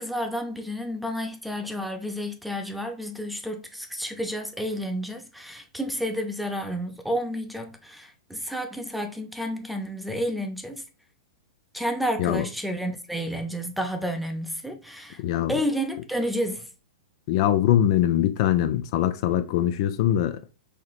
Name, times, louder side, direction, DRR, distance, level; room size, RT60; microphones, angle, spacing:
voice 1, 0.0-10.8 11.7-15.2 15.5-16.7, equal, ahead, 0.6 m, -30 dB
voice 2, 15.2-15.5 17.3-20.4, left 11 dB, 50° left, 0.4 m, -22 dB
4.8 x 2.9 x 2.4 m
hypercardioid pair, 130°, 3 cm